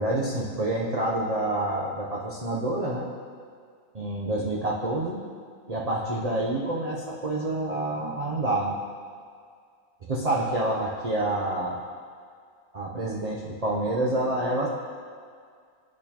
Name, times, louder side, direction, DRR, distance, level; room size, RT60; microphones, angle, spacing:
voice 1, 0.0-3.1 3.9-5.2 5.7-8.8 10.1-11.8 12.7-14.7, right 1 dB, 75° right, -4 dB, 0.3 m, -27 dB
10.5 x 4.2 x 2.9 m, 2.1 s
omnidirectional pair, 1.5 m